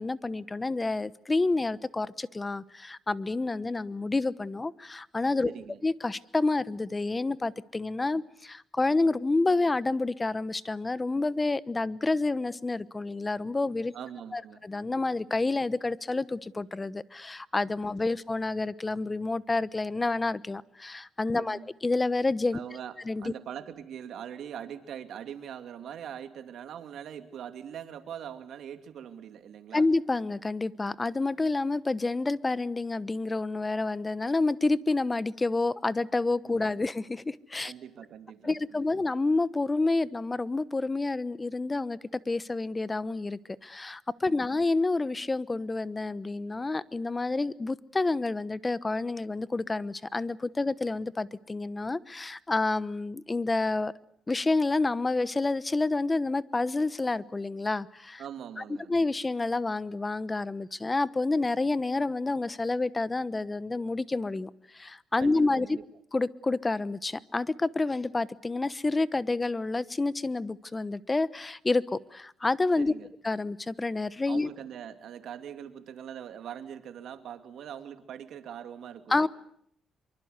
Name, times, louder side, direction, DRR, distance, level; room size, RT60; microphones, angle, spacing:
voice 1, 0.0-5.5 5.8-13.9 14.3-22.6 23.1-23.3 29.7-37.7 38.4-42.0 42.3-53.9 54.3-58.2 58.9-65.8 66.1-72.9 73.2-74.5 79.1-79.3, left 3 dB, 20° left, 17 dB, 1.0 m, -29 dB
voice 2, 5.4-5.8 13.9-14.6 21.3-21.7 22.5-29.9 37.6-39.0 44.2-44.5 58.2-58.9 65.2-65.8 72.8-73.1 74.3-79.3, right 9 dB, 70° right, 8 dB, 2.7 m, -42 dB
25.5 x 24.0 x 8.2 m, 0.70 s
cardioid pair, 90°, 0 cm